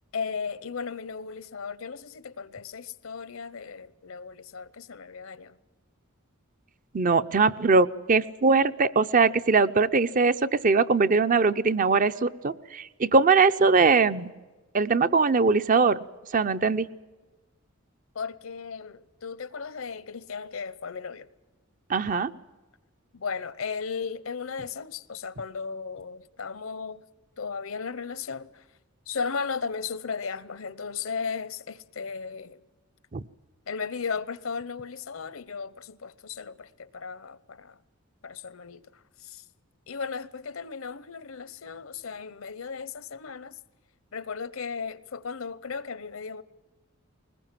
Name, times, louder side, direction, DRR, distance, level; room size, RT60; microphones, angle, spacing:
voice 1, 0.1-5.6 18.1-21.3 23.1-27.0 27.4-28.6 29.1-32.6 33.7-37.8 38.2-38.8 39.2-39.4 39.9-43.6 44.1-46.4, left 5 dB, 75° left, 0.9 m, -35 dB
voice 2, 6.9-14.3 14.7-16.0 16.3-16.9 21.9-22.3 33.1-33.2, right 4 dB, 40° right, 0.6 m, -21 dB
21.0 x 20.0 x 7.5 m
head